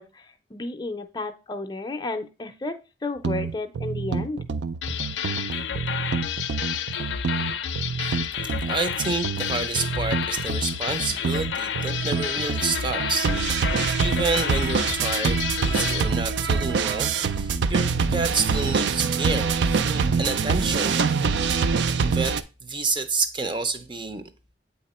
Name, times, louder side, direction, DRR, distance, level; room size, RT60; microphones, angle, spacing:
voice 1, 0.0-2.7 3.0-4.4, left 2 dB, 25° left, 0.5 m, -32 dB
sound 1, 3.2-22.4, right 5 dB, 75° right, 0.4 m, -25 dB
sound 2, 4.8-16.1, left 8 dB, 75° left, 0.4 m, -30 dB
voice 2, 8.4-21.0 22.1-24.2, right 3 dB, 25° right, 0.5 m, -29 dB
8.3 x 2.9 x 4.2 m
head